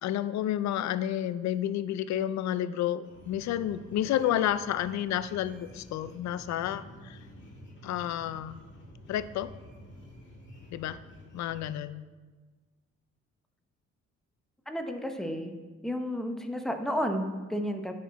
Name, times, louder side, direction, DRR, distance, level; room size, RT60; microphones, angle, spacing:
voice 1, 0.0-7.2 7.8-8.6 9.1-9.5 10.7-11.0 11.3-12.0, left 11 dB, 65° left, 14 dB, 0.5 m, -30 dB
sound 1, 3.0-11.6, left 1 dB, 40° left, 1.9 m, -50 dB
voice 2, 14.7-15.5 15.8-17.9, equal, ahead, 5 dB, 0.8 m, -32 dB
10.0 x 4.3 x 4.1 m, 1.3 s
cardioid pair, 90°, 30 cm